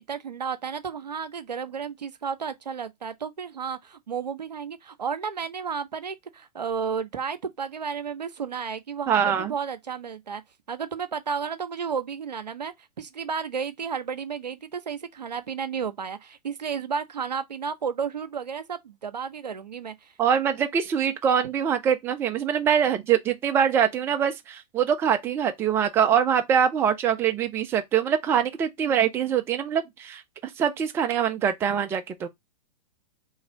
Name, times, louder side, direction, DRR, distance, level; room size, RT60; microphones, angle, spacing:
voice 1, 0.0-10.4 10.7-20.1, right 6 dB, 80° right, 0.5 m, -32 dB
voice 2, 9.1-9.5 20.2-30.2 30.6-32.3, right 8 dB, 10° right, 0.4 m, -23 dB
3.0 x 2.4 x 4.3 m
figure-of-eight pair, 105°, 21 cm